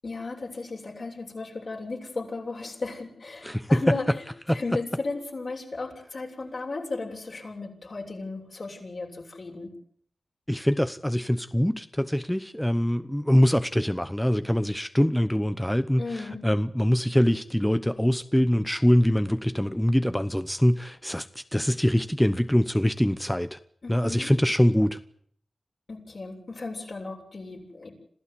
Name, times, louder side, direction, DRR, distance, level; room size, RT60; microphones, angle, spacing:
voice 1, 0.0-4.0 4.5-9.7 16.0-16.4 23.8-24.3 25.9-27.9, left 3 dB, 60° left, 7.4 m, -35 dB
voice 2, 3.4-4.0 4.5-4.6 10.5-23.6 23.9-25.0, equal, 5° left, 1.0 m, -23 dB
27.0 x 15.0 x 9.8 m
cardioid pair, 50°, 0 cm